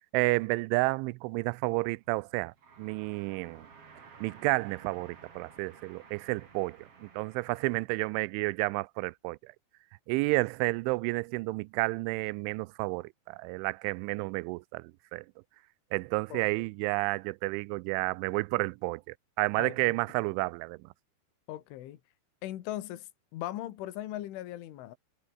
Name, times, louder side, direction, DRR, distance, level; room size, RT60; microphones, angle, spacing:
voice 1, 0.1-2.5 2.8-3.7 4.2-9.5 10.1-15.3 15.9-19.0 19.4-20.8, right 24 dB, 85° right, 3.0 m, -31 dB
sound 1, 1.9-7.9, right 6 dB, 35° right, 3.3 m, -54 dB
voice 2, 19.6-20.0 21.5-22.0 22.4-25.0, left 14 dB, 80° left, 4.2 m, -39 dB
omnidirectional pair, 5.5 m